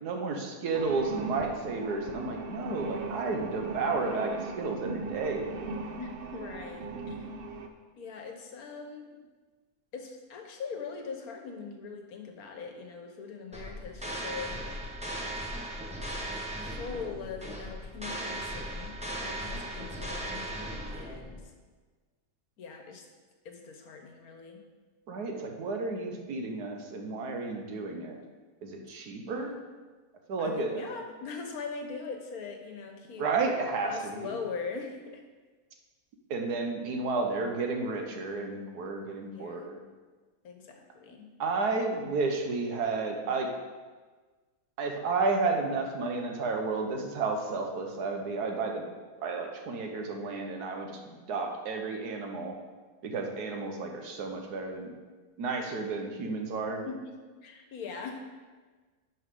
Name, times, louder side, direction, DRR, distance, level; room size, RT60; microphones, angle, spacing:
voice 1, 0.0-5.4 25.1-28.2 28.6-29.6 30.3-30.8 33.2-34.3 36.3-39.8 41.4-43.5 44.8-48.8 49.2-52.5 53.0-54.9 55.4-56.8, right 3 dB, 80° right, 3 dB, 1.5 m, -32 dB
sound 1, 0.7-7.7, right 3 dB, 60° right, 0.6 m, -38 dB
voice 2, 6.0-7.2 8.0-9.2 9.9-14.6 15.7-15.9 16.8-18.9 19.2-21.4 22.6-23.1 23.4-24.6 29.2-29.6 30.4-33.3 33.8-35.2 39.3-39.7 40.4-41.3 56.8-57.1 57.4-58.2, left 5 dB, 70° left, 4 dB, 1.4 m, -41 dB
sound 2, 13.5-21.4, right 1 dB, 5° right, 0.8 m, -37 dB
11.0 x 5.5 x 3.7 m, 1.4 s
omnidirectional pair, 1.7 m